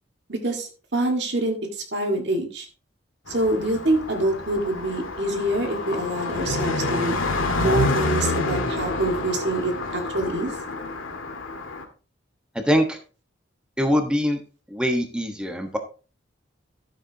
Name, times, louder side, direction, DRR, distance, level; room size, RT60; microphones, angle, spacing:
voice 1, 0.3-2.7 3.3-7.2 7.6-10.5, right 1 dB, 60° right, 2 dB, 1.9 m, -26 dB
Car passing by, 3.3-11.8, left 2 dB, 90° left, 2.0 m, -28 dB
voice 2, 12.6-13.0 13.8-14.4 14.7-15.8, equal, 5° right, 4 dB, 1.3 m, -23 dB
13.5 x 7.5 x 2.9 m, 0.36 s
head